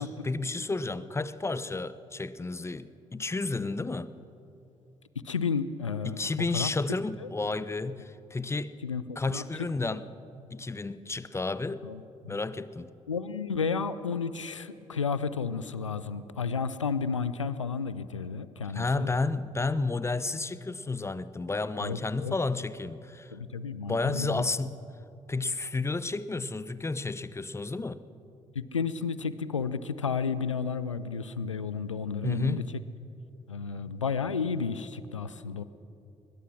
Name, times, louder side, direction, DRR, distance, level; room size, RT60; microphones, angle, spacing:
voice 1, 0.0-4.1 6.0-8.8 9.2-10.1 10.5-11.8 12.3-12.9 18.7-23.3 23.9-24.8 25.3-28.0 32.2-32.7, left 3 dB, 15° left, 16 dB, 0.9 m, -31 dB
voice 2, 5.2-6.2 6.5-6.7 7.2-7.3 8.8-9.5 11.8-12.0 12.2-12.4 13.1-19.1 21.8-22.3 23.3-24.4 28.7-32.6 33.5-35.6, left 5 dB, 85° left, 15 dB, 0.5 m, -32 dB
22.5 x 20.5 x 6.2 m, 2.7 s
figure-of-eight pair, 45°, 16 cm